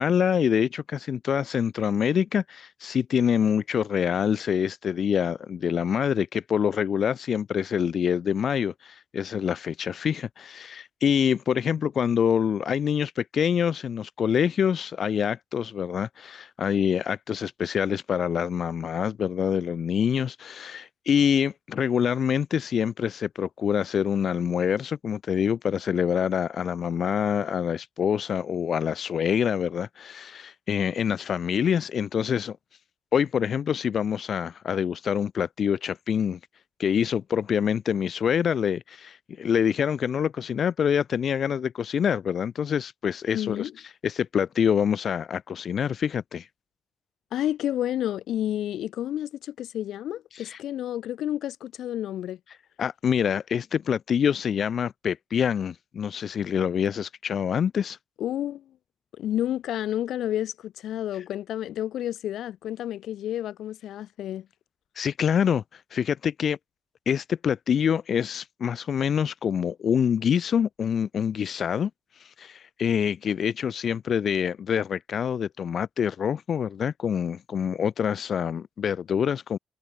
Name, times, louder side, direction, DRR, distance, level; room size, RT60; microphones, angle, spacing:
voice 1, 0.0-32.6 33.1-36.4 36.8-43.7 44.0-46.5 50.3-50.6 52.8-58.0 65.0-66.6 67.1-71.9 72.2-79.6, left 8 dB, 55° left, 0.6 m, -26 dB
voice 2, 43.3-43.7 47.3-52.4 58.2-58.6 59.2-64.5, left 12 dB, 75° left, 6.5 m, -30 dB
cardioid pair, 90°, 0 cm